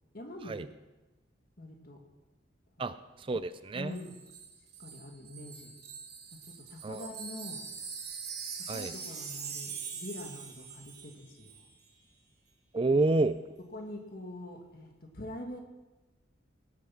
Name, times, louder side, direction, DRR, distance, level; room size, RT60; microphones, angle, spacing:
voice 1, 0.1-0.6 1.6-2.0 2.8-3.0 3.7-4.2 4.8-5.7 6.4-7.6 8.6-11.6 12.9-13.0 13.7-15.6, left 1 dB, 50° left, 3 dB, 2.1 m, -44 dB
voice 2, 2.8-3.9 6.8-7.1 8.7-8.9 12.7-13.4, right 2 dB, 25° right, 13 dB, 0.4 m, -29 dB
Wind chime, 3.9-11.2 11.4-11.6, right 6 dB, 55° right, 2.7 m, -43 dB
18.0 x 8.1 x 5.8 m, 1.1 s
head